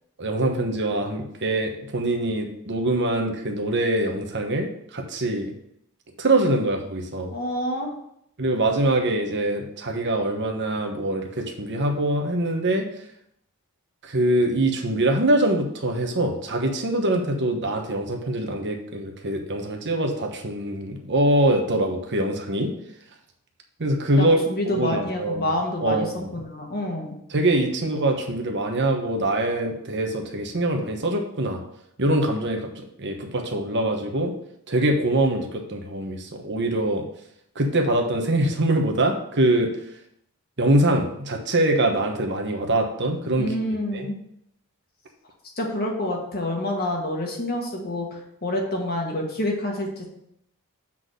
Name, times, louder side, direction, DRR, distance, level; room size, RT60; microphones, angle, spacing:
voice 1, 0.2-5.5 6.2-7.3 8.4-12.9 14.0-22.7 23.8-24.4 24.7-25.5 25.8-26.4 27.3-31.6 32.0-34.3 34.7-37.0 37.5-39.7 40.6-43.5 43.9-44.1, right 1 dB, 55° right, 3 dB, 1.1 m, -23 dB
voice 2, 7.3-7.9 24.2-27.2 43.4-44.2 45.6-50.1, left 1 dB, 45° left, 1 dB, 1.7 m, -28 dB
7.4 x 4.1 x 6.3 m, 0.75 s
head